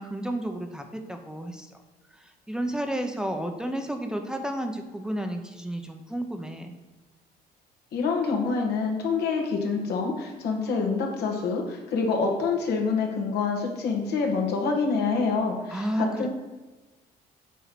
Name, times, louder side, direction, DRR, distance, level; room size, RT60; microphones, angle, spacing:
voice 1, 0.0-1.7 2.2-6.8 15.7-16.3, right 1 dB, 5° right, 3 dB, 0.8 m, -32 dB
voice 2, 7.9-16.3, left 4 dB, 75° left, 1 dB, 1.8 m, -26 dB
8.2 x 3.9 x 6.0 m, 1.2 s
cardioid pair, 110°, 17 cm